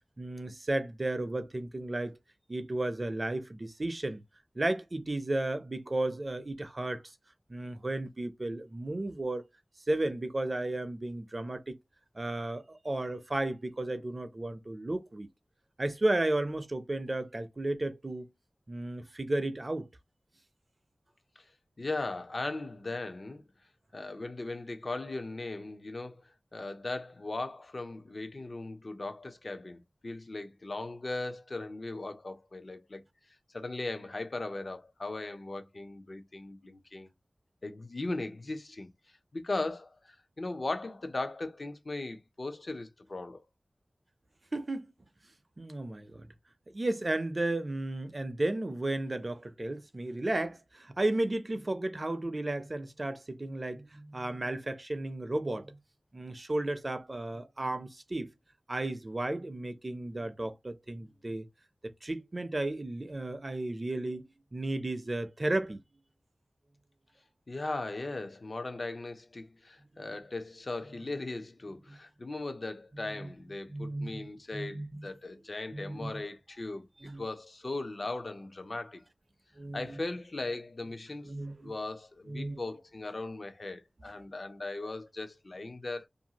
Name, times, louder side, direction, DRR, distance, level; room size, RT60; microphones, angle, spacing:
voice 1, 0.2-2.2 2.5-4.2 4.6-7.0 7.5-9.4 9.9-11.8 12.1-15.3 15.8-18.3 18.7-19.9 44.5-44.9 45.6-46.3 46.7-55.8 56.1-58.3 58.7-61.5 61.8-64.2 64.5-65.8 71.9-72.0 73.2-73.3 73.7-74.3 74.5-75.1 75.7-76.2 77.0-77.2 79.6-80.0 81.2-81.7 82.3-82.6, right 2 dB, 40° right, 0.5 m, -33 dB
voice 2, 21.8-23.4 23.9-33.0 33.5-37.1 37.6-38.9 39.3-43.4 67.5-76.9 77.1-79.0 79.7-81.4 81.6-86.1, left 2 dB, 55° left, 0.5 m, -38 dB
2.6 x 2.3 x 2.8 m
wide cardioid pair, 65°, 0 cm